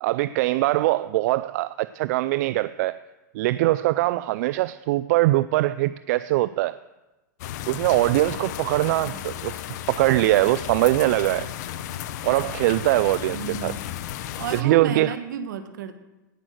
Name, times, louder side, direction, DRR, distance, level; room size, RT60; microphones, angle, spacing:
voice 1, 0.0-3.0 3.3-6.8 7.7-9.6 9.9-11.5 12.2-13.7 14.5-15.1, right 17 dB, 60° right, 15 dB, 0.4 m, -22 dB
sound 1, 7.4-14.6, left 11 dB, 60° left, 0.8 m, -34 dB
voice 2, 13.3-13.8 14.4-16.0, right 7 dB, 75° right, 10 dB, 1.3 m, -32 dB
17.5 x 6.2 x 6.4 m, 1.1 s
hypercardioid pair, 120°, 10 cm